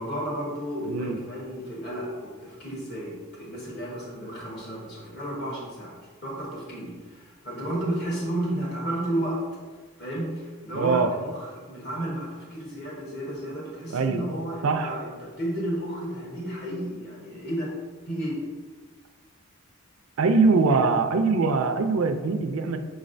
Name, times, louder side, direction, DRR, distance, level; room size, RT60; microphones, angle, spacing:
voice 1, 0.0-6.0 6.2-9.4 10.0-17.7 18.1-18.5, right 1 dB, 45° left, -4 dB, 1.2 m, -32 dB
voice 2, 0.8-1.2 10.7-11.1 13.9-14.2 14.6-14.9 20.2-22.8, right 4 dB, 70° right, 7 dB, 0.4 m, -22 dB
6.2 x 3.2 x 2.5 m, 1.4 s
head